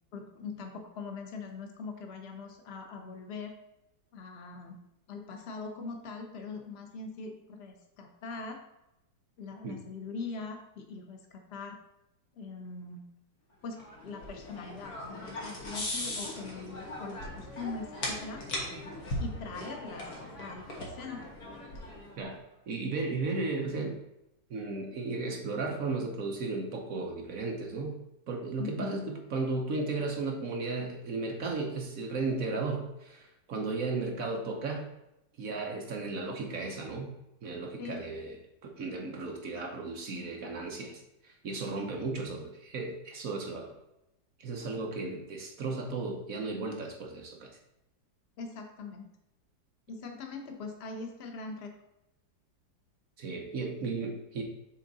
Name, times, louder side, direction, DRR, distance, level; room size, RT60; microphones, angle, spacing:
voice 1, 0.1-3.5 4.1-4.8 5.1-8.6 9.4-11.8 12.3-13.1 13.6-18.4 19.2-20.1 20.4-21.3 28.6-29.0 37.8-38.0 48.4-49.1 49.9-51.7, left 4 dB, 85° left, 4 dB, 0.5 m, -42 dB
sound 1, 13.8-22.3, left 1 dB, 55° left, 1.9 m, -39 dB
voice 2, 22.7-24.0 24.5-27.9 28.3-29.0 29.3-34.9 35.4-37.1 37.4-38.4 38.6-43.8 44.4-47.5 53.2-54.4, right 3 dB, 55° right, 1 dB, 1.1 m, -35 dB
7.2 x 3.6 x 4.0 m, 0.89 s
omnidirectional pair, 2.0 m